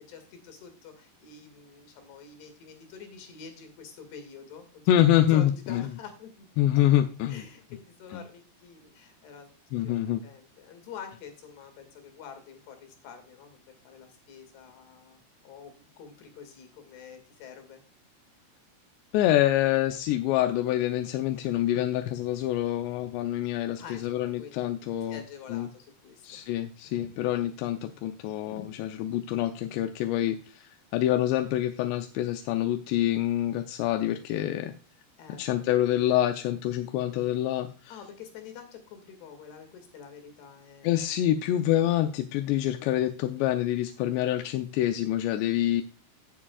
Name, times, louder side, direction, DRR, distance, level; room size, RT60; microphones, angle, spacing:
voice 1, 0.0-4.8 5.3-6.5 6.8-6.9 7.3-9.9 10.2-17.8 23.8-24.7 25.1-26.5 26.8-27.1 35.2-35.4 37.9-41.0, left 6 dB, 75° left, 6 dB, 4.3 m, -47 dB
voice 2, 4.9-5.8 6.6-7.4 8.1-8.2 9.7-10.2 19.1-25.2 25.5-25.7 26.2-34.7 35.4-37.9 40.8-45.8, left 12 dB, 90° left, 6 dB, 2.9 m, -26 dB
17.0 x 7.4 x 2.3 m, 0.34 s
omnidirectional pair, 4.9 m